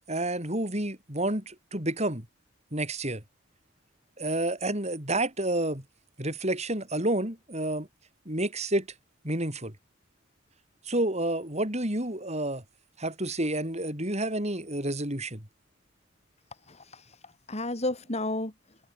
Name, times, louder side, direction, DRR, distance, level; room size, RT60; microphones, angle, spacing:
voice 1, 0.1-2.3 2.7-3.2 4.2-5.8 6.2-7.9 8.3-8.9 9.2-9.7 10.9-12.6 13.0-15.4, right 1 dB, 30° right, 7.4 m, -29 dB
voice 2, 16.7-18.8, left 2 dB, 30° left, 2.7 m, -33 dB
head